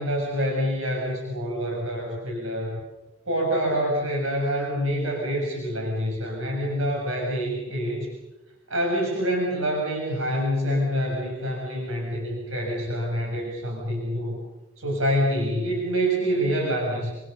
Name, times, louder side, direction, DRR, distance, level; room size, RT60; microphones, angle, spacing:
voice 1, 0.0-2.8 3.2-8.1 8.7-14.4 14.8-17.1, equal, 70° right, -1 dB, 6.8 m, -26 dB
27.5 x 26.5 x 6.8 m, 1.0 s
head